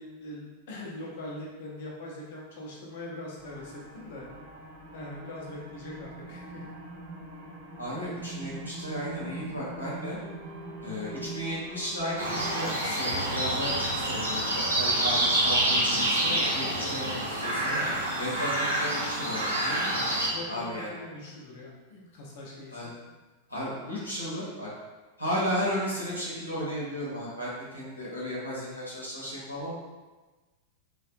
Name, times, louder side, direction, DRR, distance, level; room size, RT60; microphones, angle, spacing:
voice 1, 0.0-4.3 4.9-6.6 20.3-20.5 20.9-22.9, left 1 dB, 55° left, -3 dB, 0.6 m, -42 dB
sound 1, 3.4-17.9, right 1 dB, 30° right, 1.1 m, -42 dB
voice 2, 7.8-10.2 10.8-17.8 18.2-20.0 20.5-20.9 22.7-22.9 23.5-24.7 25.2-29.7, equal, 85° left, -8 dB, 0.9 m, -34 dB
sound 2, 12.2-20.3, right 1 dB, 80° right, 0.6 m, -27 dB
2.5 x 2.2 x 2.6 m, 1.2 s
figure-of-eight pair, 90°, 0 cm